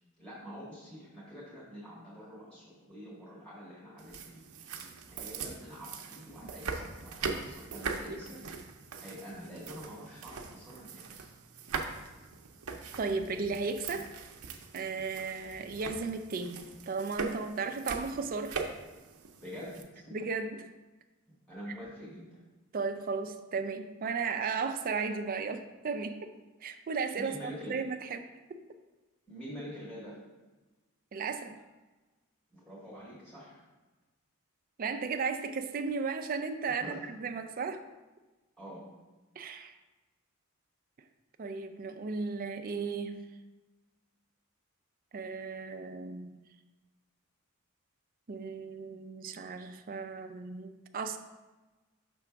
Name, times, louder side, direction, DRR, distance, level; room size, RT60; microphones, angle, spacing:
voice 1, 0.2-4.7 5.2-8.5 9.0-11.3 11.9-12.1 19.4-20.1 21.5-22.4 27.2-27.8 29.3-30.2 32.5-33.6 36.8-37.0 38.6-38.8, equal, 5° left, -9 dB, 1.7 m, -46 dB
sound 1, 4.0-19.8, right 4 dB, 90° right, 0.6 m, -41 dB
voice 2, 13.0-14.1 14.7-18.6 20.1-20.7 22.7-26.3 26.6-28.6 31.1-31.6 34.8-37.8 39.4-39.7 41.4-43.2 45.1-46.4 48.3-51.2, right 4 dB, 40° right, 7 dB, 0.4 m, -35 dB
6.0 x 3.4 x 5.8 m, 1.2 s
head